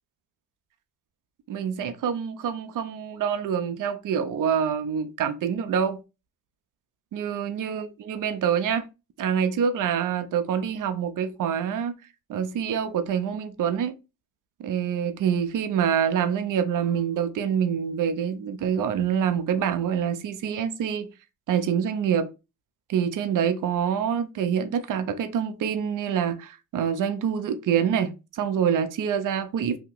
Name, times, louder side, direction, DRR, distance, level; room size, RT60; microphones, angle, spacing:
voice 1, 1.5-6.0 7.1-8.9 9.2-11.9 12.3-13.9 14.6-21.1 21.5-22.3 22.9-29.8, right 8 dB, 60° right, 0.6 m, -26 dB
2.8 x 2.1 x 3.8 m
supercardioid pair, 65°, 35 cm